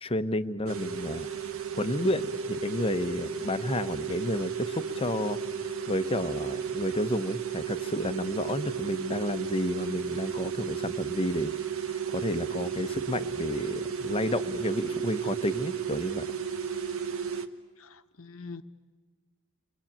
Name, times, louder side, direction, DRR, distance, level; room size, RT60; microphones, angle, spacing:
voice 1, 0.0-1.3 1.7-5.4 5.9-11.5 11.9-16.3, left 1 dB, 25° left, 11 dB, 0.8 m, -31 dB
sound 1, 0.7-17.5, right 6 dB, 65° right, 1.2 m, -33 dB
voice 2, 17.8-18.6, left 4 dB, 65° left, 10 dB, 1.0 m, -44 dB
29.5 x 23.0 x 8.8 m, 1.3 s
head